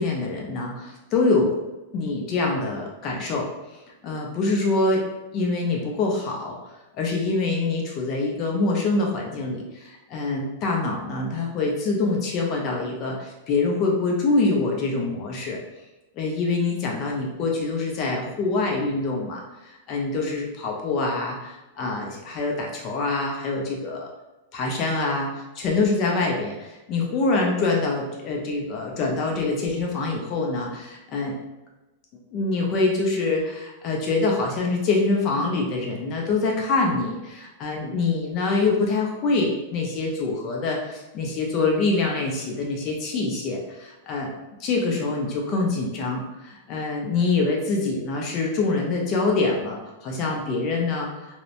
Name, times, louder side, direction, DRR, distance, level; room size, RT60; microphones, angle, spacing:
voice 1, 0.0-1.6 1.9-3.5 4.0-5.0 5.3-6.6 6.9-15.6 16.2-24.1 24.5-31.3 32.3-44.3 44.6-51.1, left 3 dB, 35° left, 0 dB, 0.4 m, -25 dB
2.8 x 2.0 x 2.5 m, 1.0 s
supercardioid pair, 155°, 0 cm